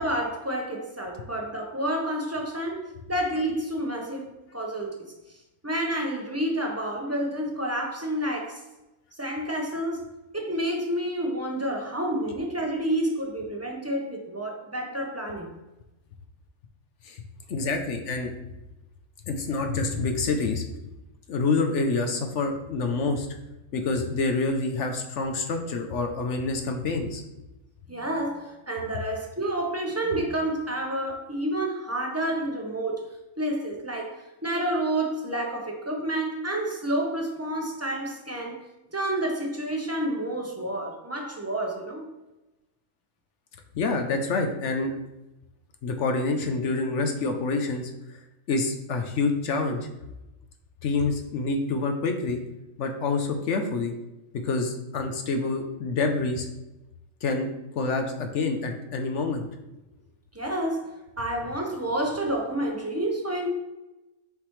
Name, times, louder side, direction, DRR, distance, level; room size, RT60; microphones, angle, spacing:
voice 1, 0.0-4.3 4.5-5.1 5.6-8.6 9.1-10.0 10.3-15.5 27.9-33.0 33.4-38.6 38.9-42.1 60.3-63.5, right 1 dB, 15° right, 0 dB, 0.8 m, -29 dB
voice 2, 17.5-18.3 19.3-20.6 21.3-23.3 23.7-27.2 43.7-44.9 45.8-47.9 48.5-49.9 50.8-52.4 52.8-53.9 54.4-56.5 57.2-57.5 57.8-59.5, left 3 dB, 65° left, 4 dB, 0.9 m, -27 dB
6.7 x 4.8 x 3.2 m, 0.97 s
omnidirectional pair, 1.4 m